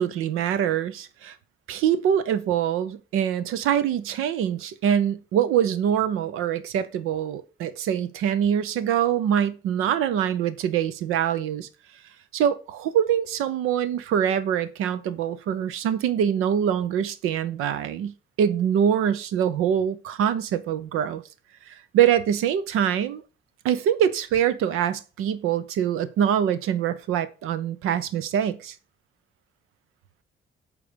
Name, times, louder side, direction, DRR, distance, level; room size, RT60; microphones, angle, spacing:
voice 1, 0.0-1.3 1.7-11.7 12.3-18.1 18.4-21.2 21.7-23.2 23.6-28.7, right 9 dB, 90° right, 0.7 m, -24 dB
8.5 x 3.3 x 5.1 m
supercardioid pair, 60°, 21 cm